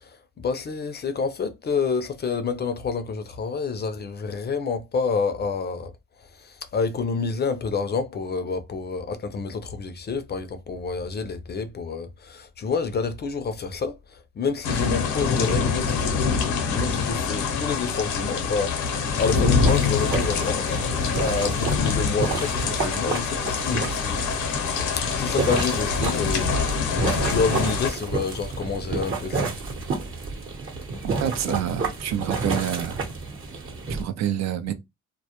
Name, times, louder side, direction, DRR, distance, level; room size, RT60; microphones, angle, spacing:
voice 1, 0.4-5.9 6.7-14.0 14.4-24.3 24.9-26.5 27.1-29.5, left 5 dB, 35° left, 0.4 m, -28 dB
sound 1, 14.6-27.9, left 5 dB, 80° left, 0.6 m, -25 dB
sound 2, 19.2-34.0, right 4 dB, 45° right, 0.8 m, -30 dB
voice 2, 31.0-33.0 33.9-34.7, right 10 dB, 65° right, 0.4 m, -27 dB
2.2 x 2.0 x 2.8 m
cardioid pair, 90°, 30 cm